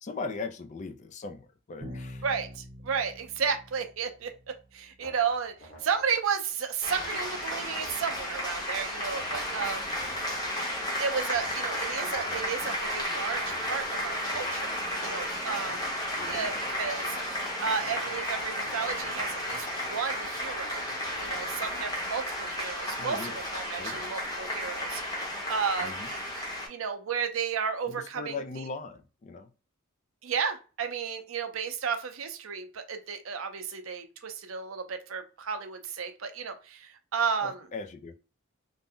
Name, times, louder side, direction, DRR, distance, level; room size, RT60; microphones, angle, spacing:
voice 1, 0.0-2.2 16.2-16.5 23.0-23.4 23.7-24.1 25.8-26.1 27.9-29.5 37.4-38.2, left 4 dB, 35° left, 0.3 m, -39 dB
Bowed string instrument, 1.8-4.6, equal, 25° right, 0.6 m, -45 dB
voice 2, 2.2-4.3 4.7-10.2 11.0-15.9 16.3-17.2 17.6-20.8 21.2-26.2 26.7-28.4 30.2-37.6, right 6 dB, 75° right, 0.5 m, -33 dB
sound 1, 5.0-6.3 7.0-8.4 9.1-10.7 11.3-12.9 13.5-14.9 15.6-16.2 16.5-17.2 17.8-20.1 20.8-21.2, left 1 dB, 65° left, 1.2 m, -52 dB
sound 2, 6.8-26.7, equal, 20° left, 0.8 m, -33 dB
2.6 x 2.1 x 3.4 m
head